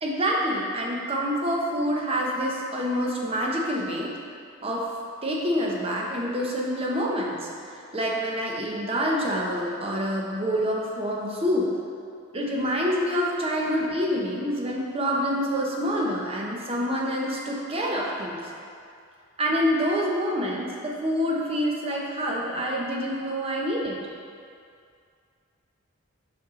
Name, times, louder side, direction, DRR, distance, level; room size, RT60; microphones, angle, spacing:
voice 1, 0.0-4.1 4.6-4.8 5.2-11.7 12.3-18.5 19.4-24.0, equal, 25° right, -2 dB, 0.8 m, -27 dB
5.8 x 5.3 x 3.7 m, 2.3 s
head